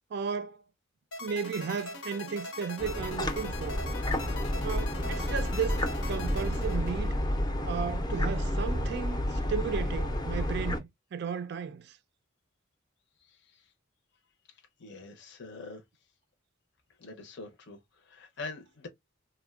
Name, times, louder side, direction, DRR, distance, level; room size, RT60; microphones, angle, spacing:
voice 1, 0.1-0.6 1.2-3.8 4.6-7.2 7.6-12.0, right 6 dB, 55° right, 0.3 m, -34 dB
sound 1, 1.1-7.4, left 3 dB, 90° left, 0.9 m, -42 dB
BC detergent, 2.8-10.8, left 1 dB, 20° left, 0.5 m, -30 dB
voice 2, 13.2-13.7 14.5-15.8 17.0-18.9, left 3 dB, 60° left, 0.6 m, -45 dB
3.3 x 2.1 x 2.3 m
head